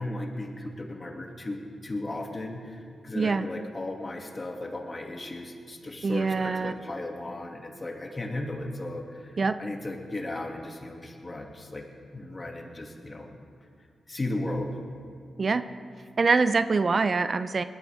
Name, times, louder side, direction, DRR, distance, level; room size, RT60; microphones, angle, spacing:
voice 1, 0.0-11.8 12.1-13.3 14.1-14.8, left 1 dB, 35° left, 1 dB, 2.5 m, -36 dB
voice 2, 3.2-3.5 6.0-6.7 9.4-9.6 15.4-15.6 16.2-17.6, right 4 dB, 50° right, 12 dB, 0.5 m, -24 dB
20.0 x 13.5 x 3.6 m, 2.5 s
supercardioid pair, 45°, 0 cm